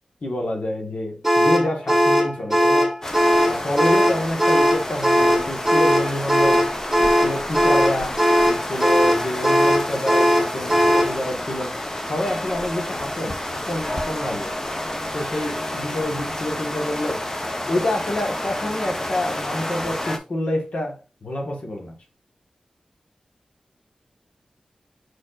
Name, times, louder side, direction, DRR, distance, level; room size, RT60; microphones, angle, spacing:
voice 1, 0.2-2.9 3.5-6.7 7.0-14.5 15.1-17.3 17.7-21.9, left 1 dB, 65° left, 1.4 m, -28 dB
sound 1, 1.2-11.2, equal, 5° right, 1.7 m, -18 dB
sound 2, 3.0-20.2, left 1 dB, 25° left, 0.9 m, -30 dB
4.8 x 4.4 x 2.5 m
cardioid pair, 55°, 2 cm